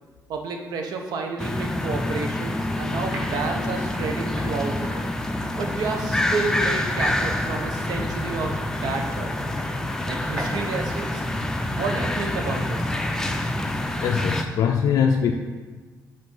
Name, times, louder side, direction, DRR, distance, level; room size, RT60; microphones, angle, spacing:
voice 1, 0.3-5.1 5.6-9.5 10.1-11.3 11.7-12.9, right 4 dB, 85° right, 3 dB, 0.8 m, -31 dB
sound 1, 1.4-14.4, left 1 dB, 10° left, 0.4 m, -27 dB
sound 2, 2.4-13.8, equal, 35° right, 1.3 m, -40 dB
voice 2, 14.0-15.3, left 7 dB, 75° left, 2 dB, 0.4 m, -22 dB
7.7 x 2.6 x 5.3 m, 1.4 s
cardioid pair, 165°, 7 cm